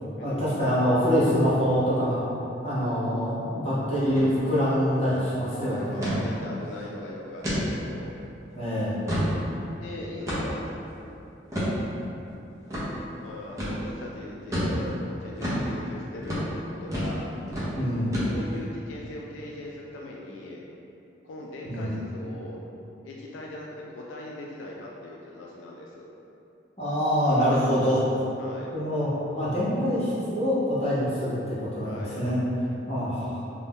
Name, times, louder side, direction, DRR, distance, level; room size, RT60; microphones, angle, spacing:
voice 1, 0.2-2.2 2.6-6.0 8.6-9.0 17.7-18.1 21.6-21.9 26.8-28.0 28.7-32.4 32.9-33.4, equal, 35° left, -10 dB, 0.8 m, -25 dB
sound 1, 4.0-4.3 4.6-4.7 5.0-5.3 6.0-6.2 6.7-6.8 7.4-7.6 8.2-8.3 8.8-9.4 10.3-10.6 11.5-11.7 12.7-12.9 13.6-13.8 14.5-14.8 15.4-15.6 16.2-16.5 16.9-17.2 17.5-17.7 18.1-18.6, equal, 15° right, 0.6 m, -29 dB
voice 2, 5.7-8.1 9.7-10.7 13.2-17.3 17.9-20.6 21.2-22.6 23.0-23.7 23.9-26.1 28.4-29.5 31.8-32.3, left 1 dB, 80° left, -3 dB, 0.3 m, -40 dB
2.6 x 2.2 x 3.4 m, 2.8 s
head